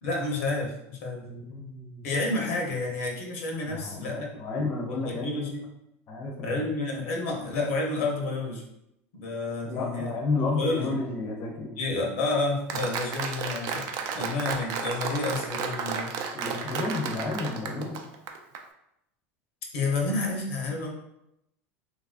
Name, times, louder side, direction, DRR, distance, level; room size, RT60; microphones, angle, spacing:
voice 1, 0.0-1.2 2.0-4.3 4.9-5.7 6.4-8.6 9.1-11.0 11.8-13.9 14.1-16.1 19.7-20.9, left 2 dB, 85° left, 0 dB, 0.7 m, -30 dB
voice 2, 1.2-2.1 3.6-5.5 6.1-6.6 9.6-11.7 16.3-18.0, left 3 dB, 35° left, 0 dB, 0.5 m, -32 dB
Applause, 12.7-18.6, right 5 dB, 55° right, 0.3 m, -33 dB
2.9 x 2.4 x 2.4 m, 0.82 s
supercardioid pair, 110°, 7 cm